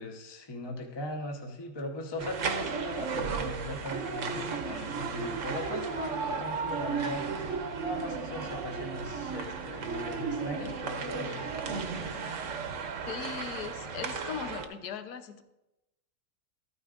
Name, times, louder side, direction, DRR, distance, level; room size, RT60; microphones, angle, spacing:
voice 1, 0.0-7.4 7.8-11.5, left 1 dB, 20° left, 2 dB, 0.7 m, -39 dB
sound 1, 2.2-14.6, right 5 dB, 60° right, 1.1 m, -34 dB
voice 2, 13.1-15.4, left 7 dB, 85° left, 8 dB, 1.3 m, -39 dB
13.5 x 9.5 x 2.5 m, 0.95 s
omnidirectional pair, 1.6 m